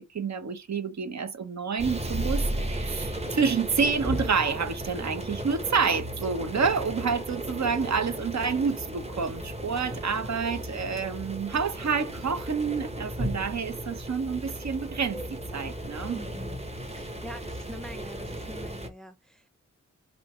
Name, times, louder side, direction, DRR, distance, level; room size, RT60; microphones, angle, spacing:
voice 1, 0.1-16.2, right 5 dB, 65° right, 0.8 m, -28 dB
sound 1, 1.8-18.9, right 1 dB, 20° right, 0.9 m, -35 dB
voice 2, 16.1-16.6 16.9-19.5, equal, ahead, 0.5 m, -44 dB
4.0 x 2.6 x 4.4 m
wide cardioid pair, 110°, 30 cm